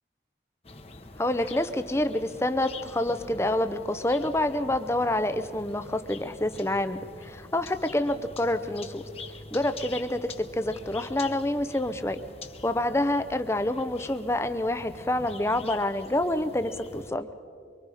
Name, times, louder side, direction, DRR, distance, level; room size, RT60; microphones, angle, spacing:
sound 1, 0.6-17.1, left 3 dB, 35° left, 1.2 m, -45 dB
voice 1, 1.2-9.0 9.5-12.2 12.6-17.3, left 1 dB, 15° left, 10 dB, 0.7 m, -27 dB
24.0 x 24.0 x 4.9 m, 2.3 s
head